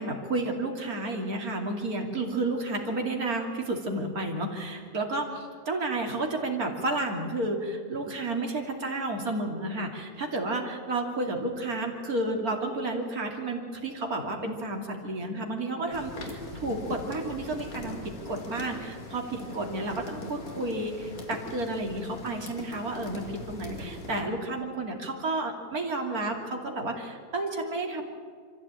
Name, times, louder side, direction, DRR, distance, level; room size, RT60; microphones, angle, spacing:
voice 1, 0.0-28.1, right 2 dB, 65° right, 2 dB, 3.2 m, -31 dB
sound 1, 15.9-24.2, left 1 dB, 60° left, 2.7 m, -41 dB
24.5 x 15.0 x 8.9 m, 2.1 s
omnidirectional pair, 1.7 m